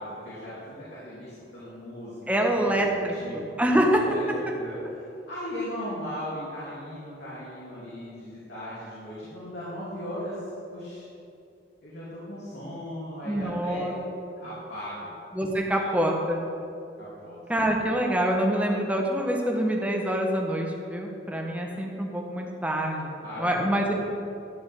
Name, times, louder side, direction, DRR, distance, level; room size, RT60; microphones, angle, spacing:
voice 1, 0.0-2.1 2.5-2.6 2.9-3.5 3.9-4.2 4.5-4.8 5.3-10.4 10.7-11.0 11.8-14.1 14.4-15.1 15.7-15.9 17.0-17.3 23.2-23.9, equal, 65° left, -10 dB, 3.3 m, -38 dB
voice 2, 2.3-4.0 13.2-13.9 15.3-16.5 17.5-23.9, right 1 dB, 10° right, 0 dB, 1.4 m, -26 dB
13.0 x 5.5 x 8.4 m, 2.6 s
head